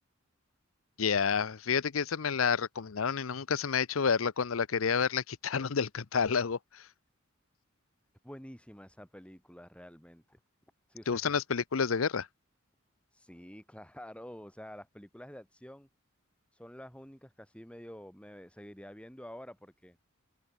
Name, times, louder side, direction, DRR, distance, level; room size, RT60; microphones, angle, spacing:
voice 1, 1.0-6.9 11.1-12.3, left 6 dB, 85° left, 0.7 m, -29 dB
voice 2, 8.2-10.4 10.9-11.5 13.1-15.9 16.5-20.0, equal, 5° left, 6.8 m, -49 dB
head